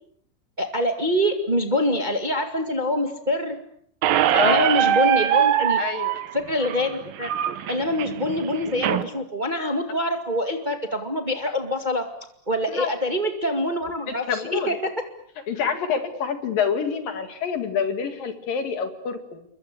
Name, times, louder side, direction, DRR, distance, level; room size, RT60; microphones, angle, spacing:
voice 1, 0.6-3.6 4.4-5.8 6.3-7.3 7.7-12.0 12.5-14.9, left 1 dB, 40° right, 6 dB, 0.6 m, -25 dB
Squeak, 4.0-9.0, right 11 dB, 65° right, 2.6 m, -22 dB
voice 2, 4.3-4.7 5.8-6.2 12.7-12.9 14.1-14.7 15.5-19.5, left 7 dB, 60° left, 9 dB, 3.5 m, -27 dB
29.0 x 23.0 x 8.5 m, 0.65 s
omnidirectional pair, 5.0 m